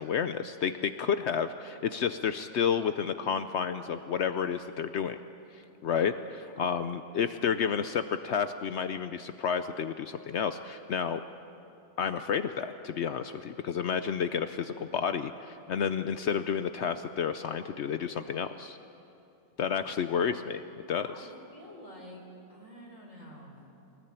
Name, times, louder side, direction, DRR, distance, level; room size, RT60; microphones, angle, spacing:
voice 1, 0.0-5.2 5.5-11.2 12.0-18.8 19.6-20.6 20.9-21.3, left 7 dB, 80° left, 10 dB, 0.6 m, -31 dB
voice 2, 21.0-22.2 22.5-23.6, equal, 40° left, 0 dB, 4.5 m, -49 dB
24.0 x 19.5 x 9.0 m, 2.7 s
omnidirectional pair, 2.0 m